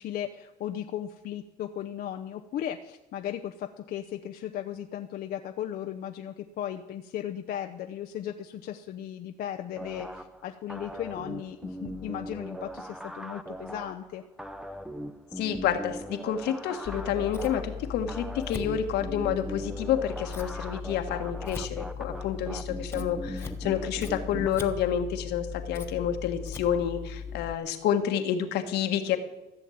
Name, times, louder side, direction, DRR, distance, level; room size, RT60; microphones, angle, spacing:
voice 1, 0.0-14.2, left 10 dB, 65° left, 5 dB, 0.8 m, -36 dB
sound 1, 9.8-24.5, equal, 5° right, 0.8 m, -40 dB
voice 2, 15.4-29.2, left 9 dB, 85° left, 6 dB, 1.6 m, -29 dB
Scissors, 16.8-27.5, left 6 dB, 15° left, 1.3 m, -38 dB
14.5 x 7.2 x 8.6 m, 0.99 s
cardioid pair, 110°, 17 cm